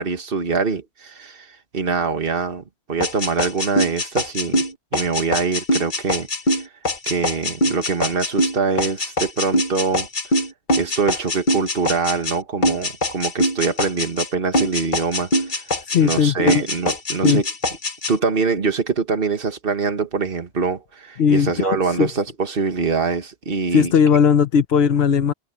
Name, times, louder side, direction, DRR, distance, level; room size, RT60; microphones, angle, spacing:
voice 1, 0.0-2.6 2.9-4.6 4.9-6.3 7.1-10.1 10.8-15.6 16.0-17.5 18.1-23.9, right 5 dB, 55° right, 1.8 m, -24 dB
sound 1, 3.0-12.4 12.6-14.3 14.5-16.2 16.5-18.1, left 1 dB, 45° left, 1.6 m, -22 dB
voice 2, 15.9-16.6 17.2-17.4 21.2-22.1 23.7-25.3, left 7 dB, 70° left, 1.1 m, -17 dB
omnidirectional pair, 1.1 m